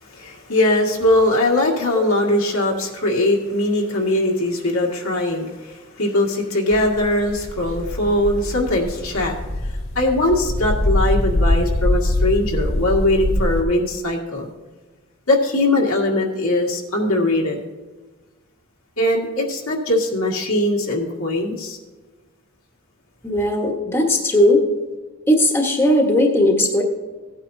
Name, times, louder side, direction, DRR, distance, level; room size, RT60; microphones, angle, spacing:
voice 1, 0.0-9.4 10.0-14.5 15.3-17.6 19.0-21.8, left 1 dB, 85° left, -1 dB, 1.9 m, -20 dB
sound 1, 6.7-13.6, left 1 dB, 70° left, 1.8 m, -23 dB
voice 2, 23.2-24.6 25.3-26.8, left 1 dB, 10° left, 0 dB, 1.3 m, -17 dB
16.5 x 9.0 x 2.7 m, 1.3 s
head